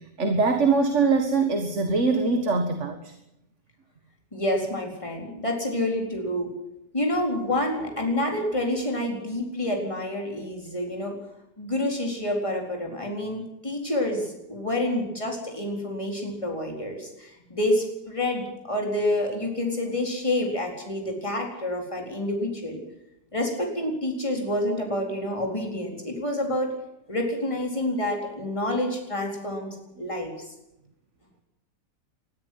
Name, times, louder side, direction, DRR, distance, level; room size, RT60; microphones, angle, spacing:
voice 1, 0.2-3.1, right 4 dB, 40° right, 6 dB, 1.9 m, -22 dB
voice 2, 4.3-6.5 6.9-11.2 11.6-22.8 23.3-26.7 27.1-30.3, left 1 dB, 15° left, 1 dB, 4.3 m, -28 dB
21.0 x 13.0 x 9.6 m, 0.88 s
omnidirectional pair, 1.9 m